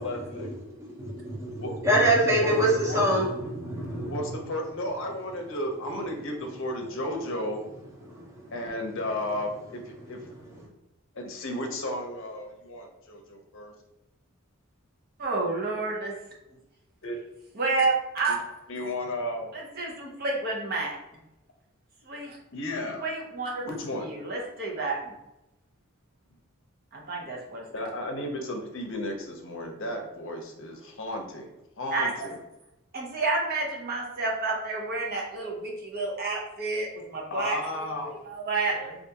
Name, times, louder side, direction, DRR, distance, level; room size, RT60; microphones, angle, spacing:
voice 1, 0.0-0.5 1.6-2.0 2.3-2.5 2.8-3.0 4.1-7.6 8.5-10.2 11.1-13.7 17.0-17.2 18.7-19.5 22.5-23.0 23.6-24.1 27.7-31.5 31.8-32.4 37.3-38.1 38.7-39.0, left 1 dB, 60° left, 0.6 m, -33 dB
voice 2, 1.2-4.3 8.0-8.5 10.5-10.6, right 1 dB, 15° right, 0.8 m, -25 dB
voice 3, 15.2-16.1 17.5-18.4 19.5-20.9 22.0-22.4 23.0-23.6 24.0-25.1 26.9-27.9 31.9-32.3 32.9-38.8, right 3 dB, 45° right, 0.7 m, -30 dB
3.4 x 2.5 x 2.8 m
head